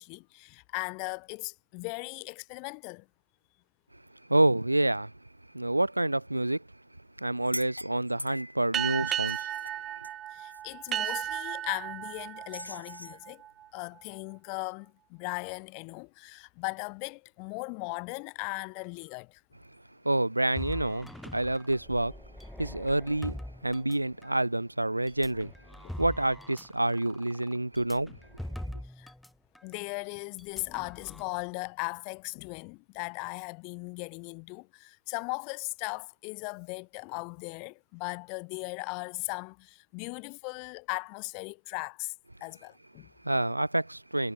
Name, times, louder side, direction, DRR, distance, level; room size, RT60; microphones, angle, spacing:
voice 1, 0.0-3.1 10.3-13.4 13.7-19.4 25.8-25.9 29.0-29.1 29.6-42.1 42.4-43.1, left 38 dB, 45° left, 3.0 m, -38 dB
voice 2, 4.3-5.1 5.5-6.7 7.2-9.5 20.0-22.1 22.6-25.5 26.0-28.2 43.2-44.3, right 1 dB, 85° right, 0.4 m, -28 dB
sound 1, 7.4-8.6 9.1-10.6 10.9-11.2 12.5-13.2, equal, 90° left, 1.0 m, -42 dB
sound 2, 8.7-13.8, right 11 dB, 30° right, 0.8 m, -34 dB
sound 3, 20.6-24.4 25.1-29.3 29.5-29.7 30.4-31.2, left 1 dB, ahead, 1.9 m, -43 dB
figure-of-eight pair, 90°, 0 cm